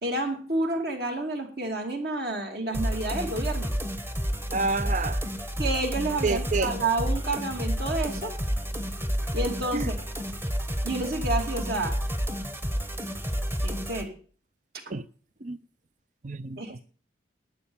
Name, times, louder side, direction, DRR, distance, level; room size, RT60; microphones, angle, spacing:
voice 1, 0.0-3.7 5.6-8.4 9.3-10.0 10.8-12.0 13.6-14.1 16.6-16.8, right 2 dB, 55° right, 2.6 m, -30 dB
sound 1, 2.7-14.0, equal, 10° right, 1.1 m, -30 dB
voice 2, 4.5-5.2 6.2-6.7 9.7-9.9 14.9-15.0 15.4-15.6 16.2-16.8, right 3 dB, 40° right, 0.5 m, -29 dB
11.5 x 9.3 x 7.0 m
head